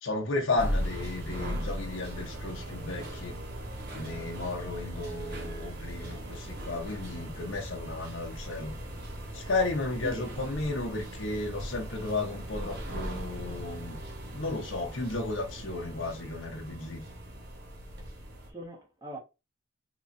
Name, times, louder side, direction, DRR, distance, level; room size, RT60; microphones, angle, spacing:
voice 1, 0.0-3.4 3.9-8.7 9.3-14.0 14.3-17.0, left 2 dB, 85° left, 1.0 m, -33 dB
sound 1, 0.6-18.5, equal, 55° right, 1.2 m, -38 dB
voice 2, 10.0-10.4 18.5-19.2, right 1 dB, 20° right, 1.1 m, -42 dB
3.8 x 3.0 x 2.6 m
head